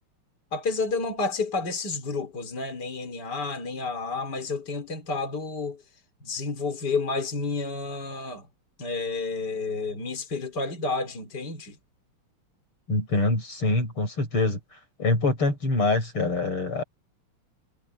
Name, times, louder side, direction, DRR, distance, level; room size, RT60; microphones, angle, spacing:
voice 1, 0.5-5.8 6.2-8.5 8.8-11.8, left 3 dB, 50° left, 4.4 m, -30 dB
voice 2, 12.9-14.6 15.0-16.8, left 2 dB, 85° left, 7.8 m, -24 dB
omnidirectional pair, 2.4 m